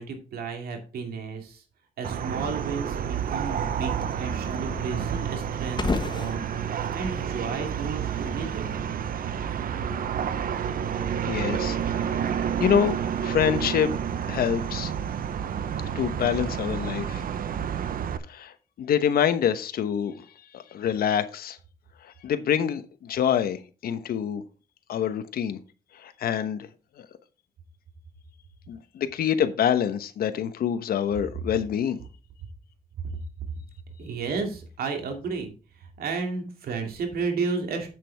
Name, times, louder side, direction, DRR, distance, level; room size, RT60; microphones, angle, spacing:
voice 1, 0.0-1.6 2.0-6.4 6.7-8.7 9.6-9.7 34.0-37.9, right 4 dB, 90° right, 2.5 m, -33 dB
sound 1, 2.0-18.2, right 8 dB, 70° right, 0.9 m, -30 dB
sound 2, 2.8-8.8, left 3 dB, 30° left, 1.1 m, -37 dB
voice 2, 11.3-13.9 14.3-14.9 15.8-17.2 18.3-20.2 20.5-21.6 22.0-24.4 24.9-25.6 25.9-26.7 27.0-27.1 28.7-32.0, left 9 dB, 85° left, 1.0 m, -26 dB
8.3 x 7.5 x 3.5 m
cardioid pair, 95°, 15 cm